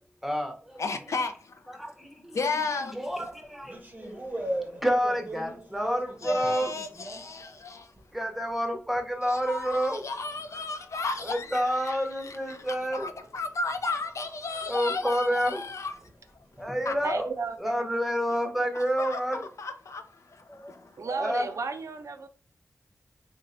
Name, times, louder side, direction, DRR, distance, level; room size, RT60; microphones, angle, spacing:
voice 1, 0.2-0.8 1.7-4.3 4.8-6.7 8.1-10.0 11.2-13.1 14.7-15.6 16.6-17.3 17.6-19.5 20.5-20.7 21.0-21.5, equal, 5° right, 0.8 m, -29 dB
voice 2, 0.8-1.6 2.3-3.0 4.3-4.6 6.2-7.9 9.2-15.9 16.9-17.0 18.7-21.0, left 3 dB, 70° left, 0.4 m, -34 dB
sound 1, 3.0-8.2 8.6-17.5, right 1 dB, 30° right, 0.7 m, -42 dB
voice 3, 17.0-17.8 21.0-22.3, right 4 dB, 75° right, 0.4 m, -33 dB
3.1 x 2.9 x 2.5 m
wide cardioid pair, 80°, 5 cm